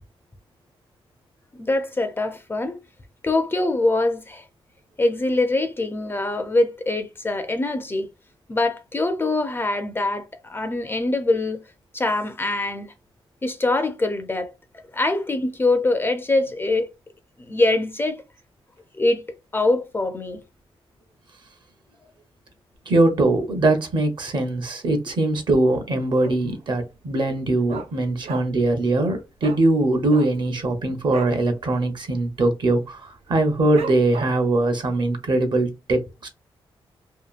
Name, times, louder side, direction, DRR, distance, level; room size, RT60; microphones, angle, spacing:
voice 1, 1.6-2.8 3.2-4.4 5.0-8.1 8.5-11.6 11.9-12.9 13.4-14.5 14.9-16.9 17.4-18.2 18.9-19.2 19.5-20.4, left 2 dB, 25° left, 0.4 m, -23 dB
voice 2, 22.9-36.3, right 2 dB, 50° right, 0.7 m, -21 dB
Dog, 26.2-26.6 26.9-27.0 27.3-28.7 29.0-29.1 29.4-29.6 30.0-31.4 31.8-32.0 32.2-32.6 33.1-33.2 33.8-34.6 35.0-35.1, right 5 dB, 80° right, 0.5 m, -35 dB
2.8 x 2.5 x 2.4 m
wide cardioid pair, 135°, 10 cm